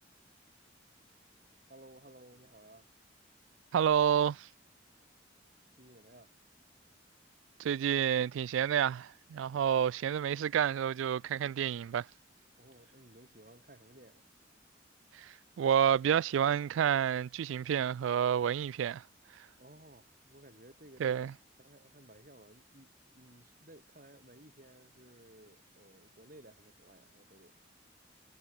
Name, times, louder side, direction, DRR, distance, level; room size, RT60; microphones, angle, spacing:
voice 1, 1.7-2.9 5.7-6.3 12.6-14.3 19.6-21.3 21.6-27.6, right 1 dB, 45° right, 5.1 m, -57 dB
voice 2, 3.7-4.5 7.6-12.1 15.2-15.3 15.6-19.0 21.0-21.3, right 9 dB, 85° right, 0.3 m, -29 dB
head